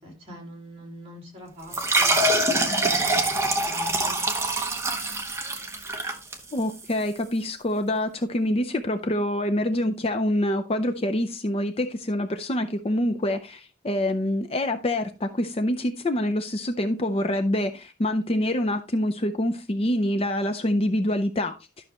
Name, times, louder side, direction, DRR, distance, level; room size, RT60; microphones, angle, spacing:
voice 1, 0.0-4.2, equal, 30° right, 1 dB, 3.5 m, -43 dB
sound 1, 1.7-6.9, right 2 dB, 15° right, 1.0 m, -24 dB
voice 2, 6.5-21.5, left 1 dB, 25° left, 7 dB, 0.5 m, -26 dB
12.0 x 6.3 x 2.9 m, 0.30 s
head